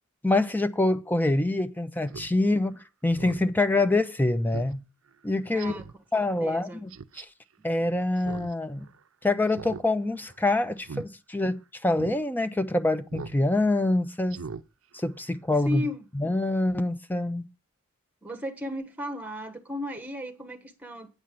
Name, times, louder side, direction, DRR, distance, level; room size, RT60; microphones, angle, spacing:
voice 1, 0.2-4.8 5.2-5.7 6.1-6.9 7.2-7.3 7.6-8.9 9.2-14.4 14.9-15.8 16.1-17.4, left 2 dB, 10° left, 0.6 m, -25 dB
Speech synthesizer, 2.1-2.3 2.7-2.8 3.1-3.5 3.9-4.0 4.5-4.7 5.1-5.2 5.6-5.9 6.9-7.2 8.2-8.5 8.8-8.9 9.5-9.8 10.1-10.4 10.8-11.1 11.5-11.6 11.9-12.2 13.1-13.4 13.7-13.8 14.3-14.6 15.0-15.1, right 4 dB, 65° right, 0.5 m, -39 dB
voice 2, 5.5-5.8 6.4-6.8 15.6-16.0 18.2-21.2, left 1 dB, 5° right, 1.4 m, -35 dB
9.5 x 5.5 x 7.5 m
head